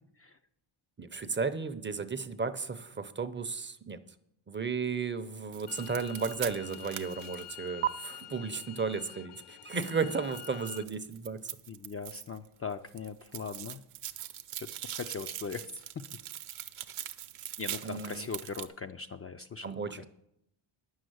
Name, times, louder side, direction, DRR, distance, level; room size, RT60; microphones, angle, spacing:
voice 1, 1.0-4.0 4.5-11.4 17.8-18.3 19.6-20.0, right 5 dB, 25° right, 10 dB, 0.6 m, -34 dB
sound 1, 5.5-7.9 9.8-12.5 12.7-18.7, right 12 dB, 75° right, 0.8 m, -40 dB
sound 2, 5.7-10.8, left 14 dB, 80° left, 0.6 m, -48 dB
voice 2, 11.7-13.8 14.6-15.8 17.6-20.0, left 5 dB, 30° left, 7 dB, 0.4 m, -40 dB
9.6 x 6.4 x 7.8 m, 0.77 s
cardioid pair, 105°, 49 cm